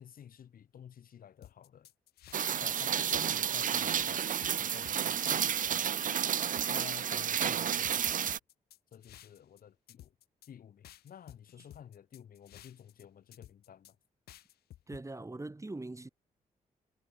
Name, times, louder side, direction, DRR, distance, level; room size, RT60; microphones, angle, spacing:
voice 1, 0.0-1.9 2.4-5.9 6.7-8.3 8.9-10.1 10.5-14.0, left 9 dB, 65° left, 2.1 m, -52 dB
sound 1, 1.4-2.7 3.0-3.6 4.0-6.2 6.5-7.1 7.4-9.6 9.9-10.5 10.8-13.0 13.3-13.9 14.3-15.0, left 13 dB, 90° left, 1.5 m, -54 dB
Rain, 2.3-8.4, right 9 dB, 60° right, 0.8 m, -31 dB
voice 2, 14.9-16.1, right 2 dB, 20° right, 4.2 m, -41 dB
cardioid pair, 70°, 16 cm